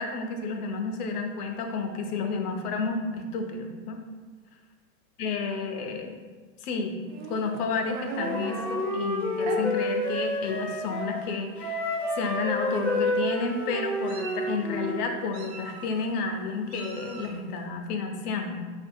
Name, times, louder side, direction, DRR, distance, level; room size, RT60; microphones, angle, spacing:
voice 1, 0.0-4.0 5.2-6.2 6.6-7.0 7.3-18.5, left 4 dB, 85° left, 4 dB, 0.8 m, -31 dB
Meow, 7.1-8.7 9.4-9.6 10.5-10.6 10.9-11.2 12.2-12.3 12.7-13.2 13.8-14.5 15.3-16.1 16.7-17.4, right 4 dB, 45° right, 0.5 m, -38 dB
Wind instrument woodwind instrument, 8.1-11.1 11.6-15.0, left 1 dB, 15° left, 0.4 m, -29 dB
5.0 x 2.6 x 2.6 m, 1.4 s
supercardioid pair, 155°, 45 cm